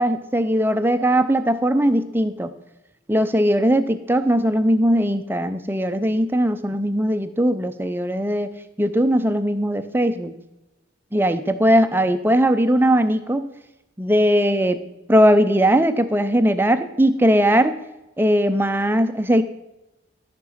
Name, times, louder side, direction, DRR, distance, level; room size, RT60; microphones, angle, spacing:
voice 1, 0.0-2.5 3.1-8.5 8.8-10.3 11.1-13.5 14.0-14.8 15.1-17.8 18.2-19.4, equal, 10° right, 10 dB, 0.5 m, -19 dB
13.0 x 6.0 x 5.5 m, 0.95 s
head